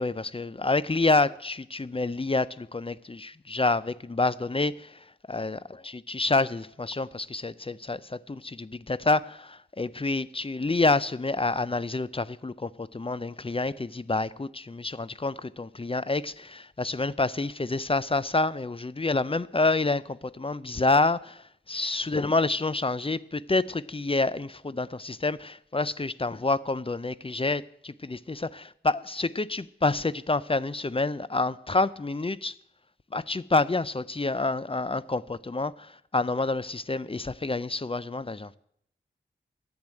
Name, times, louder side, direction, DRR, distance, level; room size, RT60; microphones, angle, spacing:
voice 1, 0.0-4.9 5.3-21.4 21.7-32.5 33.1-38.5, left 3 dB, 25° left, 0.5 m, -28 dB
10.5 x 8.0 x 8.9 m
wide cardioid pair, 50°, 21 cm